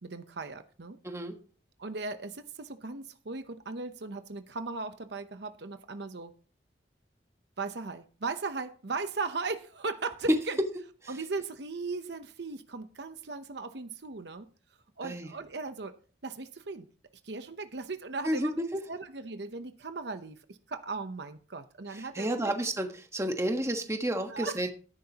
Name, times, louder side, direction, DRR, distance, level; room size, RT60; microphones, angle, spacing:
voice 1, 0.0-1.0 1.8-6.3 7.6-10.6 11.1-14.5 15.0-16.0 16.2-16.9 17.2-18.6 18.9-22.5 24.3-24.6, right 3 dB, 60° right, 0.8 m, -37 dB
voice 2, 1.0-1.4 15.0-15.3 18.2-18.8 21.9-24.7, right 1 dB, 15° right, 1.3 m, -31 dB
13.5 x 10.5 x 2.9 m
head